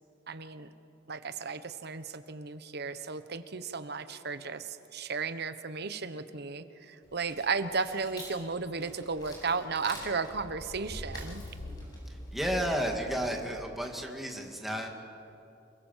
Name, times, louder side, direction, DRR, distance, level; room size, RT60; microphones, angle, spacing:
voice 1, 0.3-0.7 1.1-11.4, right 4 dB, 60° right, 11 dB, 1.2 m, -34 dB
sound 1, 7.0-13.6, equal, 20° left, 7.6 m, -44 dB
voice 2, 12.1-14.9, equal, ahead, 1 dB, 2.5 m, -32 dB
29.0 x 22.0 x 7.5 m, 2.7 s
head